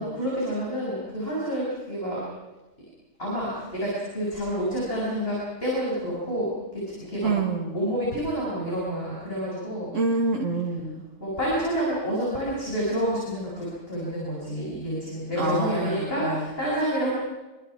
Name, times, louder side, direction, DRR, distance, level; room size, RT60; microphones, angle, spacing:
voice 1, 0.0-2.2 3.2-7.3 7.7-9.9 11.2-17.1, equal, 50° left, -6 dB, 7.7 m, -28 dB
voice 2, 7.2-7.8 9.9-11.0 15.4-16.5, right 3 dB, 75° right, 0 dB, 2.6 m, -26 dB
28.5 x 25.0 x 4.9 m, 1.1 s
omnidirectional pair, 1.3 m